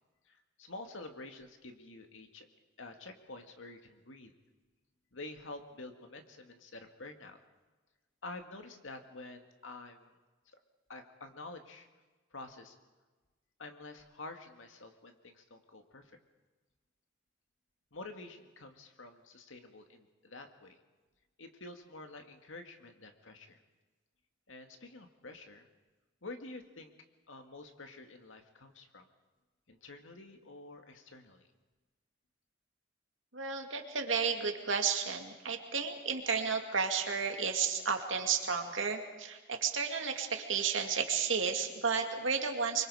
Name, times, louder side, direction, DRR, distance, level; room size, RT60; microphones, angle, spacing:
voice 1, 0.3-2.5 2.8-4.3 5.1-7.4 8.2-10.1 10.9-11.9 12.3-12.8 13.6-16.0 17.9-20.8 21.4-23.6 24.5-25.7 26.2-26.9 27.3-29.1 29.7-31.5, left 2 dB, 80° left, 5 dB, 2.1 m, -48 dB
voice 2, 33.3-42.9, right 6 dB, 80° right, 4 dB, 2.4 m, -32 dB
25.5 x 23.5 x 4.9 m, 1.3 s
head